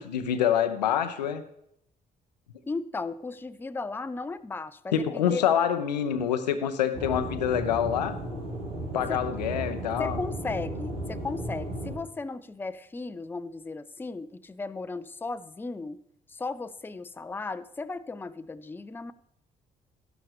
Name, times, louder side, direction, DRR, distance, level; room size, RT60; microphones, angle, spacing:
voice 1, 0.0-1.4 4.9-8.2 8.9-10.2, left 9 dB, 80° left, 10 dB, 0.6 m, -26 dB
voice 2, 2.7-5.4 9.1-9.2 10.0-16.0 16.3-19.1, left 3 dB, 10° left, 13 dB, 0.5 m, -36 dB
Aircraft / Engine, 6.9-11.9, right 1 dB, 70° right, 2.7 m, -35 dB
12.5 x 11.0 x 3.3 m, 0.76 s
figure-of-eight pair, 45°, 21 cm